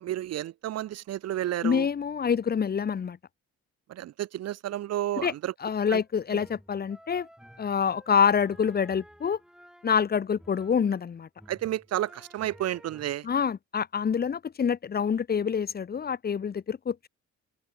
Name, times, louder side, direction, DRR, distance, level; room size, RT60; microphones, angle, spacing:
voice 1, 0.0-1.9 3.9-5.5 5.9-6.0 6.3-6.4 11.5-13.3, right 13 dB, 55° right, 0.6 m, -31 dB
voice 2, 1.6-3.2 5.2-5.3 5.6-7.3 7.6-9.4 9.8-11.3 13.2-17.1, left 7 dB, 30° left, 0.8 m, -26 dB
sound 1, 5.8-11.0 11.4-13.2, equal, ahead, 5.8 m, -54 dB
open air
cardioid pair, 90°, 30 cm